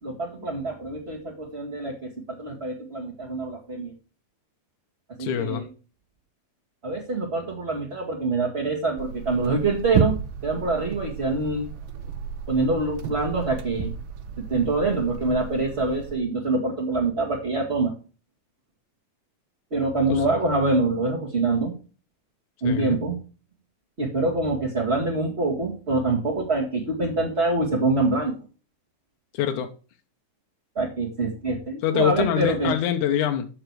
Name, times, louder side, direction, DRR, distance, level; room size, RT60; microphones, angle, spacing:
voice 1, 0.0-2.1 2.4-3.9 5.2-5.7 6.8-10.2 10.4-11.7 12.5-13.9 14.4-17.9 19.7-21.7 22.6-23.2 24.0-28.3 30.7-32.7, right 3 dB, 25° right, -3 dB, 1.6 m, -25 dB
voice 2, 5.2-5.6 20.1-20.2 22.6-23.0 29.3-29.7 31.8-33.5, left 10 dB, 75° left, 5 dB, 2.4 m, -24 dB
sound 1, 9.0-16.2, right 6 dB, 75° right, 1.1 m, -32 dB
9.9 x 6.7 x 4.6 m, 0.36 s
omnidirectional pair, 3.6 m